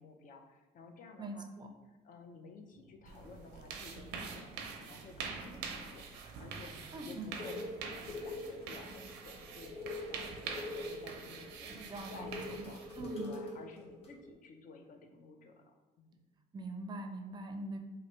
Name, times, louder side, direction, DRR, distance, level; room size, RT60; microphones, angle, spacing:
voice 1, 0.0-1.5 1.9-9.7 10.1-16.2, left 3 dB, 50° left, 4 dB, 0.6 m, -54 dB
voice 2, 1.2-1.7 6.9-7.3 11.7-13.4 16.5-17.8, right 2 dB, 25° right, 5 dB, 0.5 m, -43 dB
sound 1, 2.7-3.7 4.1-4.5 5.0-5.2 5.6-5.7 5.9-6.1 6.5-14.3, left 2 dB, 85° left, 1.1 m, -45 dB
sound 2, 3.1-13.3, right 5 dB, 90° right, 0.5 m, -45 dB
sound 3, 8.6-10.5 11.5-14.3, left 1 dB, 35° left, 1.0 m, -64 dB
3.1 x 2.5 x 4.2 m, 1.1 s
cardioid pair, 110°, 17 cm